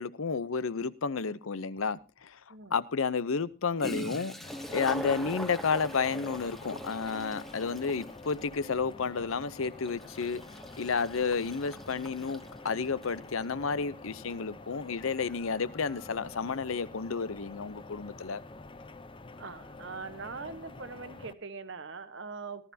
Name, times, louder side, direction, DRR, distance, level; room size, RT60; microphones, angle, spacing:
voice 1, 0.0-10.4 10.8-18.4, left 5 dB, 80° left, 0.7 m, -31 dB
Toilet flush, 1.8-1.9 3.5-3.6 3.8-13.2, equal, ahead, 0.9 m, -42 dB
sound 1, 4.4-21.3, left 3 dB, 25° left, 0.6 m, -48 dB
voice 2, 19.4-22.7, right 4 dB, 60° right, 1.2 m, -42 dB
18.5 x 12.5 x 2.8 m
head